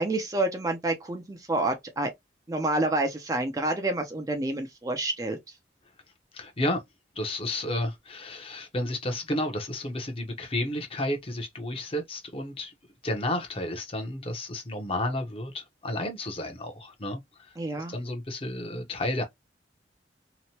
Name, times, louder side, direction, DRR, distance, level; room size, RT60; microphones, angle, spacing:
voice 1, 0.0-2.1 2.5-5.4 17.6-18.0, right 2 dB, 20° right, 0.4 m, -28 dB
voice 2, 6.3-6.8 7.2-12.7 13.0-19.2, left 1 dB, 30° left, 0.7 m, -32 dB
2.9 x 2.1 x 2.8 m
head